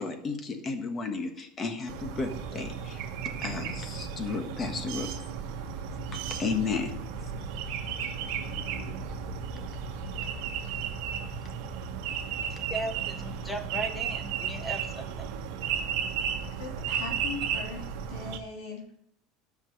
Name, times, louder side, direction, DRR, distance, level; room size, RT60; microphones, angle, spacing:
voice 1, 0.0-3.0 3.4-5.1 6.1-6.9 8.9-9.0, left 4 dB, 25° left, 6 dB, 1.4 m, -33 dB
sound 1, 1.9-18.4, right 7 dB, 65° right, 1.4 m, -34 dB
voice 2, 12.7-15.3, right 1 dB, 5° left, 7 dB, 1.0 m, -37 dB
voice 3, 16.6-18.9, left 3 dB, 85° left, -1 dB, 3.1 m, -40 dB
12.5 x 5.9 x 6.5 m, 0.74 s
cardioid pair, 160°, 0 cm